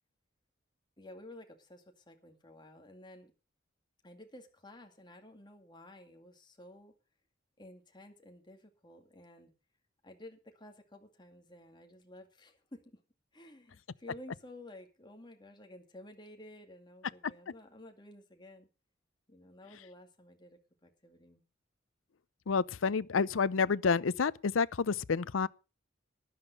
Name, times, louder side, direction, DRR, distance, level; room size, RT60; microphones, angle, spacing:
voice 1, 1.0-3.3 4.0-6.9 7.6-9.5 10.0-13.0 13.3-18.7 19.3-21.4, left 1 dB, 25° left, 2.2 m, -53 dB
voice 2, 22.5-25.5, left 5 dB, 80° left, 0.6 m, -29 dB
12.5 x 11.0 x 5.3 m
head